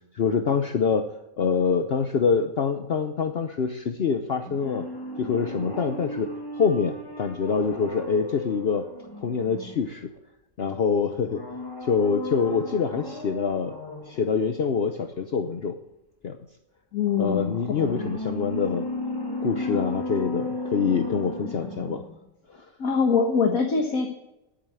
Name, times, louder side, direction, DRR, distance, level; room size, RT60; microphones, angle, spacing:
voice 1, 0.1-1.1 1.4-4.8 5.2-8.9 9.2-10.1 10.6-11.4 11.8-13.8 14.1-15.7 16.2-16.4 17.2-18.9 19.4-22.0, left 6 dB, 50° left, 7 dB, 1.0 m, -25 dB
sound 1, 4.4-10.2 11.2-14.3 17.0-22.2 22.5-22.6, left 1 dB, 15° left, 1.6 m, -35 dB
voice 2, 16.9-18.0 22.8-24.1, left 5 dB, 85° left, 3 dB, 1.8 m, -24 dB
11.0 x 9.0 x 8.6 m, 0.90 s
omnidirectional pair, 1.4 m